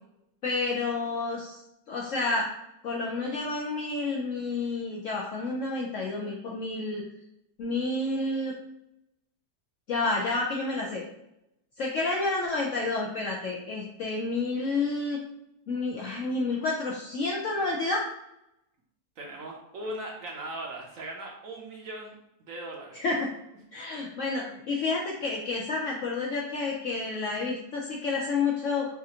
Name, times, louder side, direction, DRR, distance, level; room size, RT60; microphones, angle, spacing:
voice 1, 0.4-1.6 1.9-2.5 2.8-7.0 7.6-8.5 9.9-11.0 11.8-15.2 15.7-18.1 22.9-23.3 23.7-28.9, left 3 dB, 70° left, -2 dB, 0.7 m, -30 dB
voice 2, 19.2-22.1 22.5-23.0, right 1 dB, 65° right, 0 dB, 0.9 m, -38 dB
5.6 x 2.4 x 2.8 m, 0.83 s
omnidirectional pair, 1.8 m